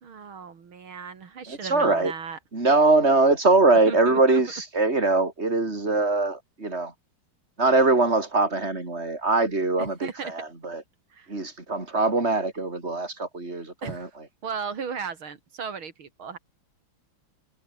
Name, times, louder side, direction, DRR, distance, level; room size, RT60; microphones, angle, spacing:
voice 1, 0.0-2.4 3.9-4.4 9.8-10.3 11.1-11.3 13.8-14.1 14.4-16.4, right 6 dB, 90° right, 3.3 m, -36 dB
voice 2, 1.5-2.1 2.5-6.9 7.6-10.8 11.3-14.1, right 3 dB, 30° right, 4.8 m, -22 dB
omnidirectional pair, 2.2 m